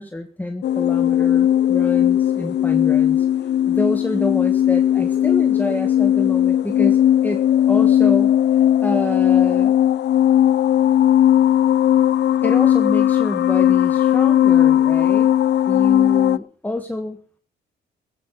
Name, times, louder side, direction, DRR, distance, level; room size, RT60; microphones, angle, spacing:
voice 1, 0.0-9.8 12.4-15.3 15.7-17.2, left 1 dB, 10° left, 5 dB, 1.4 m, -28 dB
sound 1, 0.6-16.4, left 11 dB, 60° left, 0.6 m, -17 dB
16.0 x 15.5 x 3.9 m, 0.43 s
cardioid pair, 90°, 20 cm